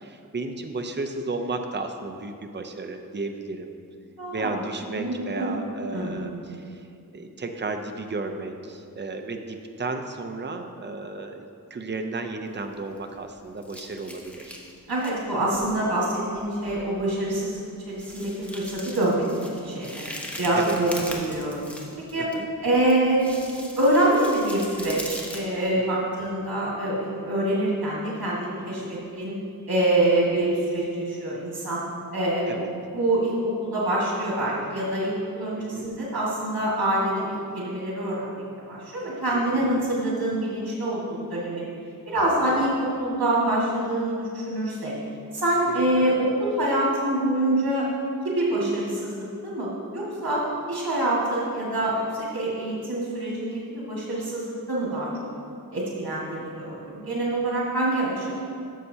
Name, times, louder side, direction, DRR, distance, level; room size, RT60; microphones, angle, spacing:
voice 1, 0.0-3.7 4.3-6.9 7.1-14.6 20.5-20.8 22.2-22.5 25.9-26.1 28.7-28.9 32.5-32.7 35.6-35.9 39.3-39.6 45.8-45.9, right 3 dB, 30° right, 5 dB, 0.6 m, -34 dB
voice 2, 4.2-4.6 5.0-5.6 5.9-6.3 14.9-19.2 19.6-20.0 20.4-21.6 22.1-22.3 22.6-23.3 23.8-29.3 29.7-31.8 32.1-32.6 32.9-38.4 38.7-41.7 42.1-44.9 45.3-47.9 48.2-50.4 50.7-55.3 55.7-58.3, right 1 dB, 80° right, -6 dB, 1.9 m, -25 dB
sound 1, 12.5-13.3 13.6-15.2 15.5-15.7 16.4-16.5 16.7-16.9 17.2-17.3 17.9-22.3 22.9-25.4, equal, 5° left, 1.0 m, -40 dB
12.0 x 6.7 x 2.8 m, 2.4 s
wide cardioid pair, 65°, 36 cm